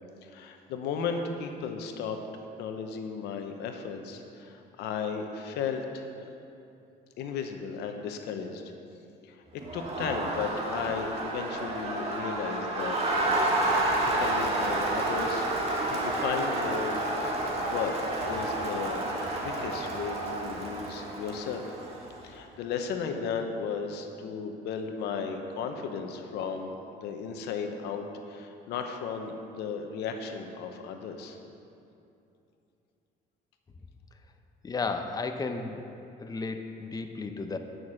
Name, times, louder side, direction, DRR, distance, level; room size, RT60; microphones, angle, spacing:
voice 1, 0.2-2.2 2.6-6.1 7.2-8.6 9.2-15.5 15.9-18.0 18.2-19.1 19.4-21.8 22.2-26.7 27.0-31.4, left 6 dB, 85° left, 5 dB, 0.9 m, -35 dB
Crowd, 9.6-22.1, right 2 dB, 35° right, 1.8 m, -30 dB
voice 2, 34.6-35.8 36.2-37.6, left 4 dB, 20° left, 6 dB, 0.7 m, -33 dB
9.7 x 6.3 x 6.3 m, 2.7 s
cardioid pair, 110°, 17 cm